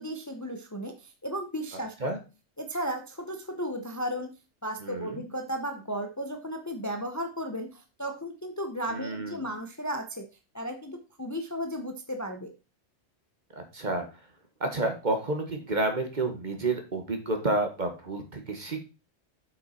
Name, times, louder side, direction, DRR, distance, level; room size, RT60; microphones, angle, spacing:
voice 1, 0.0-2.1 2.6-4.3 4.6-10.2 10.5-12.5, equal, 15° left, 6 dB, 0.8 m, -34 dB
voice 2, 4.8-5.2 8.9-9.4 13.5-14.1 14.6-18.8, right 2 dB, 40° right, 5 dB, 1.5 m, -30 dB
7.7 x 6.0 x 4.2 m, 0.30 s
omnidirectional pair, 1.2 m